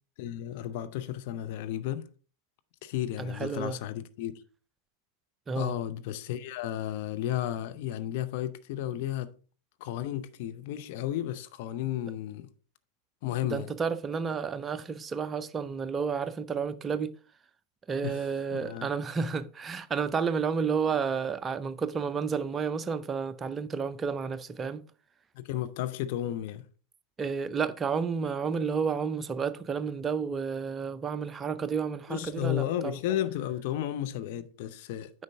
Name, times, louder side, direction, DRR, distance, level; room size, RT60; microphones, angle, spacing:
voice 1, 0.2-2.1 2.8-4.4 5.5-9.3 9.8-12.5 13.2-13.7 18.0-18.2 18.5-18.9 25.3-26.6 32.1-35.1, left 12 dB, 50° left, 0.7 m, -33 dB
voice 2, 3.2-3.8 5.5-5.8 13.5-17.1 17.9-24.8 27.2-33.0, right 6 dB, 20° right, 0.5 m, -31 dB
9.0 x 5.3 x 3.5 m
figure-of-eight pair, 90°, 0 cm